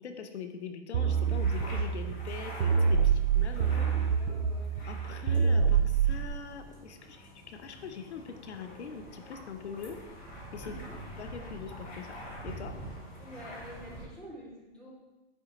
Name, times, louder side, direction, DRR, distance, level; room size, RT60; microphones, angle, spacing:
voice 1, 0.0-3.9 4.8-10.0 10.5-10.8 11.2-12.1 12.4-12.7, left 6 dB, 85° left, 7 dB, 0.8 m, -42 dB
sound 1, 0.9-6.3, right 6 dB, 65° right, 0.6 m, -27 dB
sound 2, 1.1-14.0, equal, 25° left, 2.1 m, -46 dB
voice 2, 4.1-4.7 10.6-11.0 13.2-14.9, right 1 dB, 5° left, -8 dB, 2.2 m, -48 dB
9.5 x 3.6 x 3.0 m, 1.1 s
hypercardioid pair, 135°, 33 cm